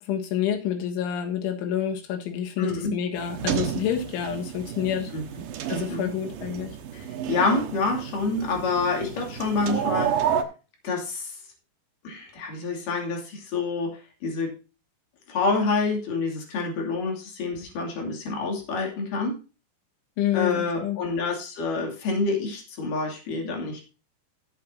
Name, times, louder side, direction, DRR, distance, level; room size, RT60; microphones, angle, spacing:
voice 1, 0.1-5.1 5.7-6.7 20.2-21.0, left 9 dB, 80° left, 4 dB, 3.9 m, -28 dB
voice 2, 2.6-3.0 5.1-5.2 5.7-6.1 6.9-10.3 10.8-11.4 12.0-14.5 15.3-19.4 20.3-23.9, left 3 dB, 50° left, 1 dB, 3.8 m, -27 dB
sound 1, 3.1-10.4, right 9 dB, 90° right, 1.9 m, -31 dB
16.0 x 8.0 x 2.8 m, 0.33 s
omnidirectional pair, 5.6 m